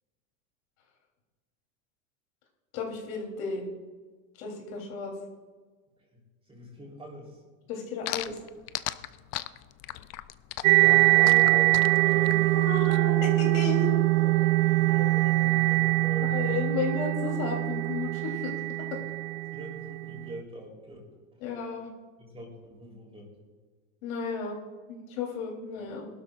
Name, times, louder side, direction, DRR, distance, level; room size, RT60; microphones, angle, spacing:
voice 1, 2.7-3.7 4.4-5.1 7.7-8.4 12.5-14.1 16.3-18.5 18.9-19.0 21.4-21.9 24.0-24.6 24.9-26.1, left 4 dB, 80° left, 0 dB, 3.5 m, -33 dB
voice 2, 6.5-7.4 10.8-12.6 14.0-16.5 19.5-21.1 22.2-23.3, right 1 dB, 15° right, -1 dB, 3.6 m, -42 dB
sound 1, 8.0-13.0, left 16 dB, 40° left, 0.4 m, -36 dB
sound 2, 10.6-20.2, right 21 dB, 70° right, 0.5 m, -23 dB
20.0 x 12.5 x 2.5 m, 1.4 s
supercardioid pair, 145°, 41 cm